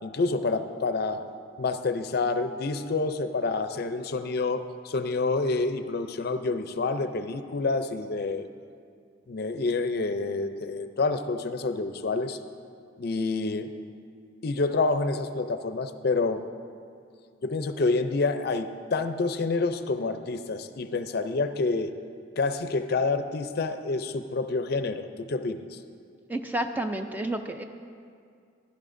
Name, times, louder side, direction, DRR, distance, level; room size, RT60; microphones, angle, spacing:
voice 1, 0.0-1.2 1.6-8.5 9.3-12.4 13.0-13.7 14.4-16.5 17.4-21.9 22.4-25.6, left 3 dB, 50° left, 9 dB, 0.5 m, -28 dB
voice 2, 26.3-27.6, right 1 dB, 10° right, 6 dB, 0.3 m, -30 dB
16.0 x 11.5 x 2.6 m, 2.3 s
head